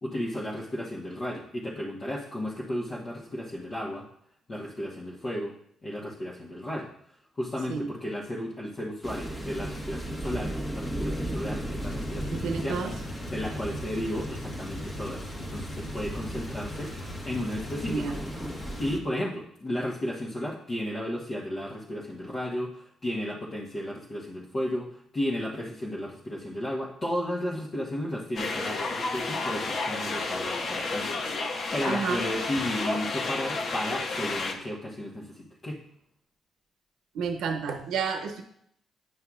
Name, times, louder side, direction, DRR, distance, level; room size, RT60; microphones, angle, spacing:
voice 1, 0.0-4.1 4.5-5.5 5.8-6.9 7.4-12.8 13.3-16.9 17.2-18.1 18.8-31.2 31.7-35.8, left 1 dB, 35° left, -5 dB, 1.2 m, -34 dB
sound 1, 9.0-19.0, equal, 15° left, 1.3 m, -35 dB
Truck, 11.8-18.8, left 2 dB, 85° left, 1.0 m, -42 dB
voice 2, 12.3-12.9 17.9-18.2 31.8-32.3 37.1-38.4, right 5 dB, 80° right, 4 dB, 0.8 m, -30 dB
sound 2, 28.4-34.5, left 3 dB, 55° left, 0.8 m, -31 dB
9.5 x 5.5 x 2.4 m, 0.70 s
cardioid pair, 90°, 0 cm